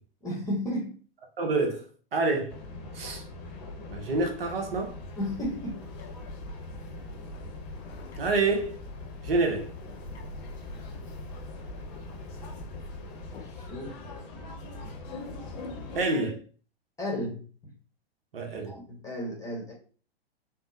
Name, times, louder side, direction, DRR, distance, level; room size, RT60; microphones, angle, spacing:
voice 1, 0.2-1.0 5.2-5.8 13.4-14.0 17.0-17.4 18.6-19.7, equal, 10° left, 0.9 m, -33 dB
voice 2, 1.4-1.8 2.1-2.6 2.9-3.2 3.9-5.0 8.2-8.8 9.2-9.7 15.9-16.4 18.3-18.7, right 3 dB, 65° right, 0.9 m, -27 dB
sound 1, 2.5-16.0, left 2 dB, 40° left, 0.7 m, -42 dB
Bird, 4.9-13.7, left 2 dB, 80° left, 0.5 m, -44 dB
3.5 x 2.1 x 2.6 m
figure-of-eight pair, 110°, 31 cm